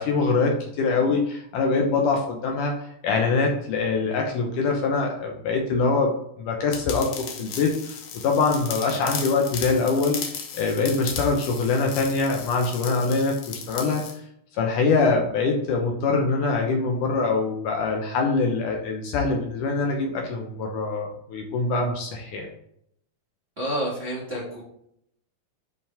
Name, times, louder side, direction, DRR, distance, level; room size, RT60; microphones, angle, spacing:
voice 1, 0.0-8.0 8.2-10.2 10.5-14.0 14.5-22.5, left 4 dB, 70° left, 1 dB, 2.2 m, -24 dB
sound 1, 6.7-14.1, left 7 dB, 85° left, 1.3 m, -36 dB
voice 2, 23.6-24.6, equal, 25° right, -6 dB, 1.7 m, -29 dB
11.0 x 5.2 x 3.5 m, 0.72 s
omnidirectional pair, 4.3 m